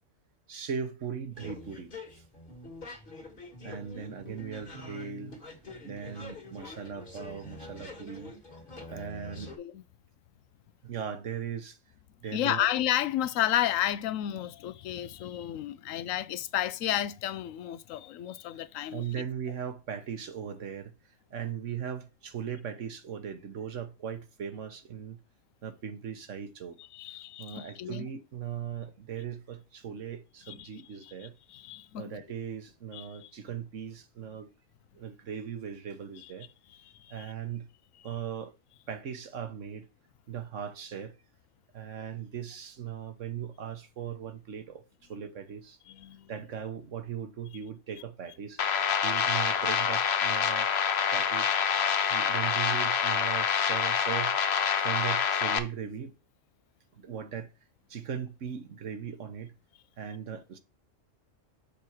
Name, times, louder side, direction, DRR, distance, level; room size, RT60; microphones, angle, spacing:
voice 1, 0.5-2.2 3.6-5.6 5.8-8.3 8.9-9.5 10.8-11.8 12.2-12.7 18.9-20.9 21.3-25.2 25.6-26.8 27.4-31.3 31.9-34.5 34.9-36.5 37.1-37.7 38.0-38.5 38.9-39.9 40.3-41.1 41.7-44.8 45.1-45.8 46.3-48.6 49.0-50.7 51.1-51.8 52.1-54.4 54.8-56.2 56.9-57.5 57.9-59.5 60.0-60.6, right 8 dB, 70° right, 1.4 m, -38 dB
sound 1, 1.3-9.6, left 2 dB, 45° left, 1.7 m, -45 dB
voice 2, 12.3-19.0 26.8-28.1 30.5-30.7 31.0-32.1 32.9-33.3 37.0-37.3 45.9-46.3 51.7-52.3, left 12 dB, 85° left, 1.0 m, -32 dB
sound 2, 48.6-55.6, left 7 dB, 60° left, 1.0 m, -26 dB
6.8 x 4.4 x 4.7 m
omnidirectional pair, 1.3 m